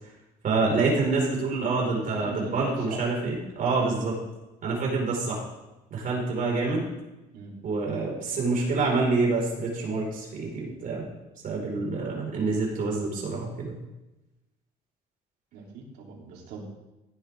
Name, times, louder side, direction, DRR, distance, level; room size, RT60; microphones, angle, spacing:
voice 1, 0.4-4.2 4.6-5.4 5.9-6.8 7.6-11.0 11.4-13.7, right 3 dB, 55° right, -1 dB, 4.7 m, -27 dB
voice 2, 1.9-3.1 7.3-7.6 15.5-16.6, right 4 dB, 90° right, -2 dB, 3.2 m, -40 dB
16.0 x 8.9 x 3.6 m, 1.0 s
cardioid pair, 110°, 17 cm